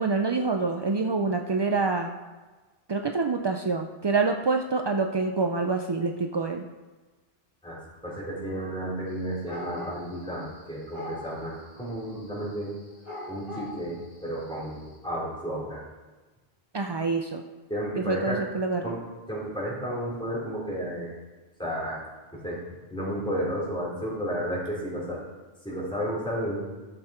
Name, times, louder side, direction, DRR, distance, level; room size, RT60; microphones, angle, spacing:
voice 1, 0.0-2.1 2.9-6.6 16.7-17.4 18.1-18.9, right 4 dB, 45° right, 4 dB, 0.3 m, -26 dB
voice 2, 8.0-12.7 13.3-15.8 17.7-18.4 18.8-19.0 19.3-21.1 21.6-22.1 22.3-22.6 22.9-25.2 25.6-26.6, equal, 5° left, -7 dB, 3.8 m, -32 dB
sound 1, 9.5-10.6 10.9-11.4 11.8-14.8, left 1 dB, 30° left, 2.6 m, -40 dB
13.0 x 6.7 x 4.4 m, 1.2 s
omnidirectional pair, 1.1 m